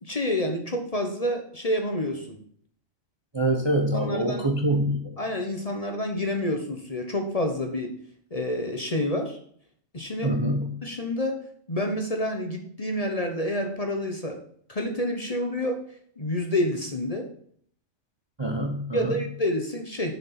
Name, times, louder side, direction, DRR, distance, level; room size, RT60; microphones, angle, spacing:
voice 1, 0.0-2.4 3.9-4.5 5.2-8.0 8.3-9.4 9.9-10.3 10.8-11.4 11.7-14.4 14.7-15.8 16.2-17.3 18.9-20.2, left 1 dB, 30° left, 3 dB, 1.0 m, -28 dB
voice 2, 3.3-5.1 10.2-10.7 18.4-19.1, right 1 dB, 25° right, 3 dB, 0.7 m, -25 dB
6.9 x 6.6 x 5.8 m, 0.62 s
omnidirectional pair, 1.4 m